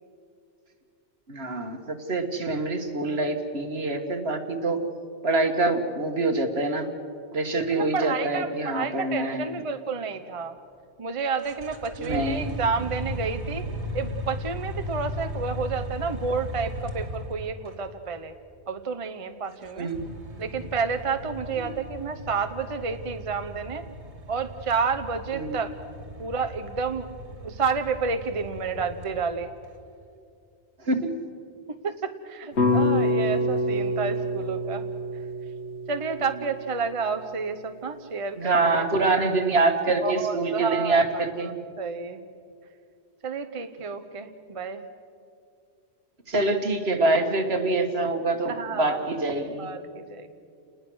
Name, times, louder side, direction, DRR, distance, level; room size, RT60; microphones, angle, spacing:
voice 1, 1.3-4.8 5.2-6.9 7.3-9.6 12.0-12.5 19.8-20.0 21.6-21.7 25.3-25.6 30.9-31.1 38.4-41.5 46.3-49.7, right 2 dB, 65° right, 5 dB, 1.9 m, -25 dB
voice 2, 7.7-10.6 11.0-13.7 13.9-18.3 18.7-19.9 20.4-23.9 24.3-25.7 26.2-27.1 27.4-29.5 31.8-34.9 35.9-38.9 40.0-41.5 41.8-42.2 43.2-44.8 48.5-49.1 49.6-50.3, right 5 dB, 30° right, 7 dB, 0.9 m, -30 dB
sound 1, 11.4-17.8 19.5-29.6, equal, 85° right, 2.1 m, -37 dB
sound 2, 32.6-36.8, left 1 dB, 75° left, 1.8 m, -26 dB
29.0 x 20.0 x 6.3 m, 2.4 s
omnidirectional pair, 1.1 m